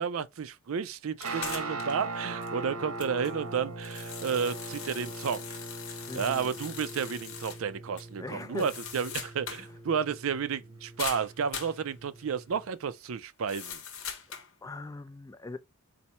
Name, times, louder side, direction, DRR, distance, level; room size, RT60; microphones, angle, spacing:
voice 1, 0.0-5.6 5.9-13.8, right 6 dB, 65° right, 0.4 m, -32 dB
sound 1, 1.2-2.0 2.4-2.5 3.0-7.6 8.0-8.1 8.4-9.7 9.9-10.0 11.0-11.8 13.5-14.5, left 7 dB, 70° left, 1.0 m, -41 dB
Guitar, 1.2-12.7, right 2 dB, 90° right, 0.9 m, -41 dB
voice 2, 6.1-6.5 8.2-8.7 9.5-9.7 14.6-15.6, left 2 dB, 15° left, 0.3 m, -40 dB
4.2 x 2.7 x 4.3 m
head